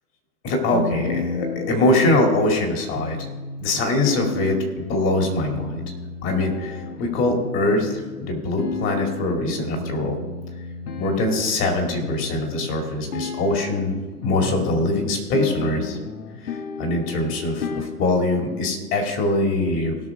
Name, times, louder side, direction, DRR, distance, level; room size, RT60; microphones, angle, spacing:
voice 1, 0.4-3.3 3.6-5.8 6.2-10.2 11.0-14.0 14.2-16.0 16.4-20.0, left 2 dB, 25° left, 2 dB, 2.3 m, -23 dB
sound 1, 0.7-18.7, left 4 dB, 75° left, 1.3 m, -33 dB
17.5 x 6.2 x 4.7 m, 1.4 s
hypercardioid pair, 125°, 46 cm